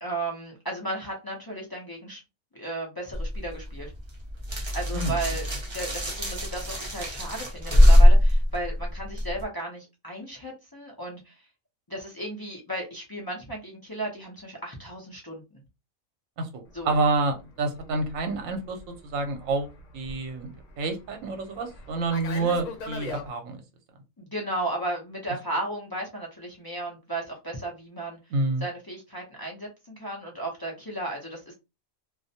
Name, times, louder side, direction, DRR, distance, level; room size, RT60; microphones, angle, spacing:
voice 1, 0.0-2.2 2.5-3.9 4.7-5.5 5.7-11.4 11.9-15.6 16.7-16.9 24.2-28.2 28.6-31.6, right 2 dB, 35° left, -2 dB, 0.3 m, -34 dB
sound 1, 3.1-9.4, left 1 dB, 30° right, 0.5 m, -21 dB
voice 2, 16.4-18.8 19.0-19.7 19.9-23.6 28.3-28.6, right 3 dB, 75° right, 5 dB, 1.0 m, -28 dB
Fixed-wing aircraft airplane, 16.8-23.3, left 3 dB, 70° left, 0.9 m, -42 dB
2.5 x 2.0 x 2.7 m, 0.25 s
omnidirectional pair, 1.4 m